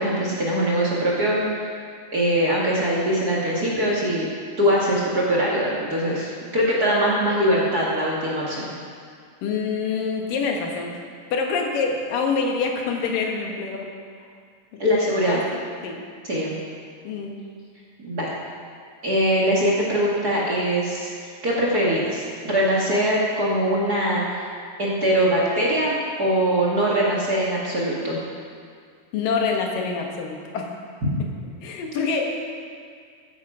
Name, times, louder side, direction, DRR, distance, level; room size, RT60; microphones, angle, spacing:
voice 1, 0.0-1.7 2.1-4.3 4.6-8.7 14.8-15.4 16.2-16.5 18.0-18.3 19.0-21.1 21.4-24.4 24.8-28.2, equal, 35° right, -5 dB, 1.9 m, -22 dB
voice 2, 9.4-10.9 11.3-13.9 14.7-14.8 15.3-15.4 15.8-16.0 17.0-17.4 29.1-30.7 31.6-32.3, left 5 dB, 85° left, 1 dB, 3.1 m, -26 dB
15.5 x 10.0 x 4.9 m, 2.1 s
omnidirectional pair, 3.8 m